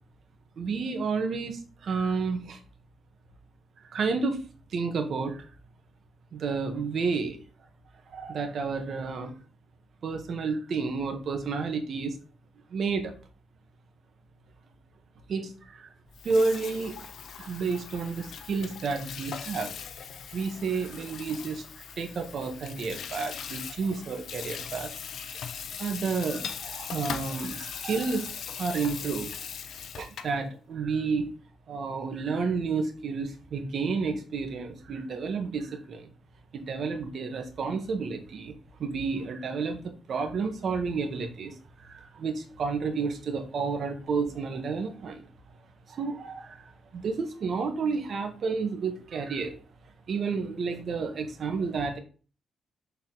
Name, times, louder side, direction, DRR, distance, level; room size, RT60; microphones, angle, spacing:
voice 1, 0.6-2.6 3.8-4.4 4.7-5.4 6.3-7.4 8.1-9.3 10.0-12.2 12.7-13.1 15.3-15.9 16.2-17.0 17.4-19.8 20.3-24.9 25.8-29.3 30.0-31.3 31.7-36.1 36.5-38.5 38.8-45.2 45.9-49.6 50.1-52.0, right 4 dB, 65° right, 5 dB, 1.5 m, -31 dB
Water tap faucet / Sink (filling or washing), 16.1-30.4, left 7 dB, 75° left, 0.8 m, -40 dB
7.1 x 4.1 x 4.1 m, 0.37 s
cardioid pair, 80°, 0 cm